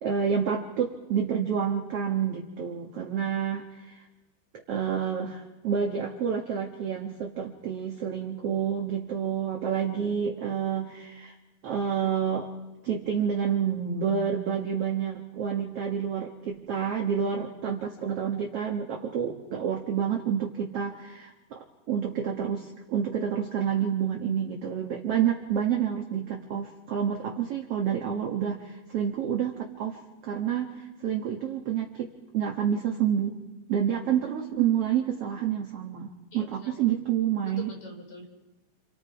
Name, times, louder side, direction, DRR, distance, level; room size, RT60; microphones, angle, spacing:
voice 1, 0.0-4.0 4.7-11.3 11.6-12.5 12.8-32.1 32.3-33.4 33.7-37.7, right 8 dB, 60° right, 1 dB, 1.6 m, -29 dB
voice 2, 36.3-36.7 37.4-38.2, left 4 dB, 45° left, 1 dB, 4.8 m, -44 dB
28.5 x 28.0 x 4.8 m, 1.1 s
omnidirectional pair, 4.8 m